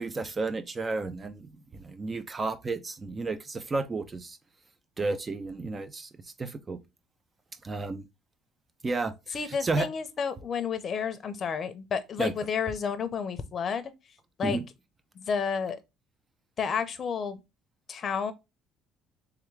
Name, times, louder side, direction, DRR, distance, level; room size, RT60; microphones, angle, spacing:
voice 1, 0.0-4.4 5.0-6.1 6.4-6.8 7.6-8.1 8.8-9.9 12.2-12.3 14.4-14.6, right 3 dB, 25° right, 0.6 m, -32 dB
voice 2, 9.3-13.9 14.4-14.6 15.2-15.8 16.6-17.4 17.9-18.3, left 6 dB, 40° left, 0.7 m, -31 dB
3.5 x 3.5 x 3.2 m
cardioid pair, 120°, 0 cm